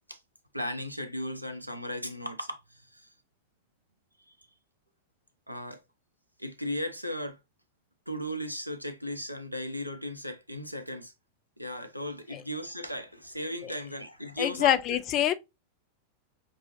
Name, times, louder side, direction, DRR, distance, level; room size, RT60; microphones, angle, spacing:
voice 1, 0.5-3.1 4.3-4.5 5.5-5.8 6.4-7.4 8.1-11.1 11.6-15.0, equal, 90° right, 0.5 m, -36 dB
voice 2, 14.4-15.3, left 12 dB, 35° left, 0.4 m, -25 dB
5.2 x 2.0 x 2.9 m
figure-of-eight pair, 90°, 0 cm